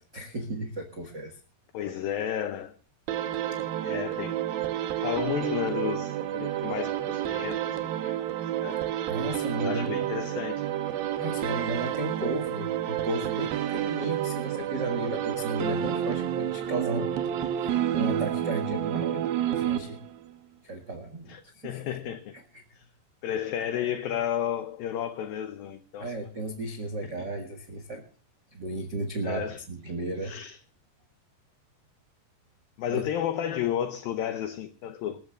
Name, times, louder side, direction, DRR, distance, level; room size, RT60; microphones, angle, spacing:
voice 1, 0.0-1.4 9.1-10.1 11.2-17.1 17.4-20.0 20.6-22.0 22.5-22.6 26.0-28.0 28.5-30.3 32.9-33.0, right 2 dB, 85° right, 0.9 m, -34 dB
voice 2, 1.7-2.7 3.8-4.4 5.0-7.6 8.0-8.8 9.6-10.7 21.3-22.4 22.7-22.9 23.2-26.1 29.2-29.6 30.2-30.6 32.8-35.2, left 10 dB, 90° left, 2.0 m, -32 dB
sound 1, 3.1-20.3, right 11 dB, 70° right, 2.5 m, -30 dB
27.0 x 14.0 x 2.4 m
omnidirectional pair, 5.3 m